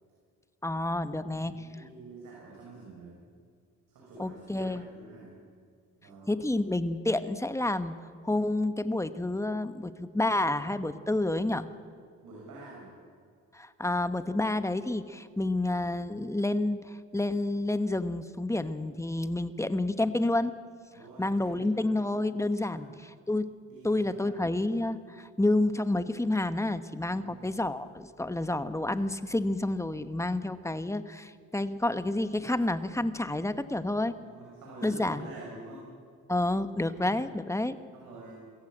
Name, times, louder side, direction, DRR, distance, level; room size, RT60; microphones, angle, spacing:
voice 1, 0.6-1.5 4.2-4.9 6.3-7.9 8.2-11.7 13.5-20.5 21.2-23.5 23.8-34.1 34.8-35.3 36.3-37.8, left 2 dB, 10° left, 11 dB, 1.1 m, -29 dB
voice 2, 1.3-3.2 3.9-5.4 6.0-6.4 12.2-12.9 20.9-21.9 22.6-22.9 23.7-24.5 27.1-27.4 34.2-35.8 36.9-37.3 37.9-38.3, right 3 dB, 80° right, -4 dB, 6.3 m, -48 dB
22.5 x 14.5 x 8.8 m, 2.1 s
cardioid pair, 80°, 32 cm